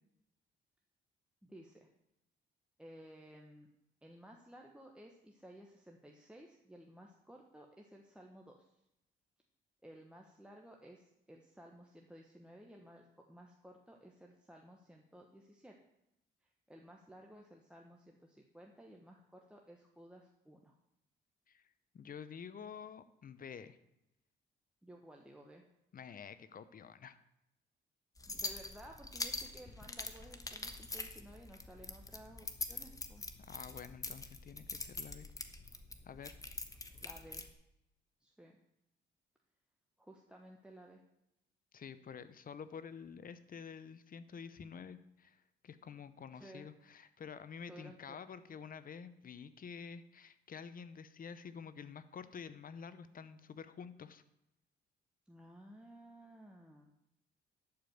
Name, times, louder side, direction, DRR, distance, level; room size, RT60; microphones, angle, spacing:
voice 1, 1.4-1.9 2.8-3.7 4.0-8.7 9.8-15.8 16.4-20.8 24.8-25.6 28.3-33.2 37.0-37.4 38.2-38.5 40.0-41.0 46.3-46.7 47.7-48.2 55.3-56.9, right 1 dB, 5° right, 0 dB, 1.2 m, -56 dB
voice 2, 21.9-23.8 25.9-27.2 33.4-35.3 36.0-36.3 41.7-54.2, left 6 dB, 45° left, 13 dB, 0.8 m, -49 dB
sound 1, 28.2-37.5, left 2 dB, 15° left, 1.1 m, -44 dB
11.5 x 5.2 x 7.8 m, 0.84 s
cardioid pair, 90°, 20 cm